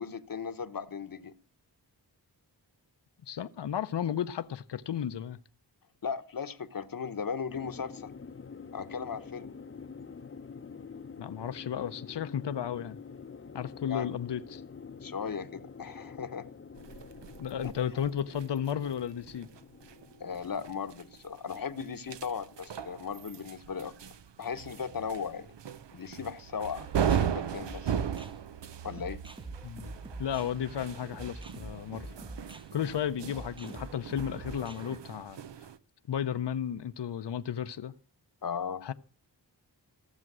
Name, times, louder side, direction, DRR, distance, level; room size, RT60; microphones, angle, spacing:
voice 1, 0.0-1.3 6.0-8.1 8.7-9.5 13.9-14.1 15.0-16.5 17.6-17.7 20.2-23.9 24.4-25.5 25.9-28.0 28.8-29.2 38.4-38.8, left 6 dB, 55° left, 0.9 m, -37 dB
voice 2, 3.3-5.4 11.2-13.0 13.5-14.6 17.4-19.5 29.6-29.9 30.2-32.1 32.7-35.4 36.1-37.9 38.8-38.9, left 9 dB, 80° left, 0.7 m, -33 dB
sound 1, 7.5-22.3, left 5 dB, 30° left, 0.7 m, -47 dB
sound 2, 16.8-35.8, right 8 dB, 85° right, 0.7 m, -38 dB
sound 3, 26.8-35.0, right 1 dB, 10° right, 0.7 m, -46 dB
15.0 x 7.5 x 6.1 m
wide cardioid pair, 85°, 41 cm